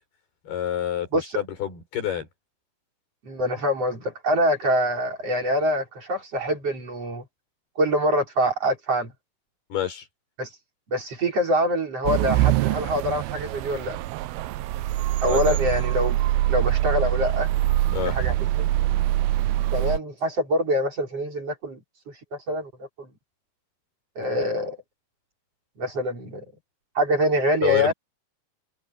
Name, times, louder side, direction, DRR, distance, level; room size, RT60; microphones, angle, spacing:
voice 1, 0.5-2.3 9.7-10.1 15.3-15.6 17.9-18.2 27.6-27.9, left 10 dB, 85° left, 7.0 m, -28 dB
voice 2, 3.2-7.2 7.8-9.1 10.4-10.5 10.9-14.0 15.2-16.2 16.5-17.5 18.0-18.7 19.7-21.8 22.5-22.7 23.0-23.1 24.2-24.8 25.8-26.4 27.0-27.9, equal, 40° right, 5.7 m, -25 dB
sound 1, 12.1-20.0, right 15 dB, 85° right, 2.6 m, -24 dB
omnidirectional pair, 4.4 m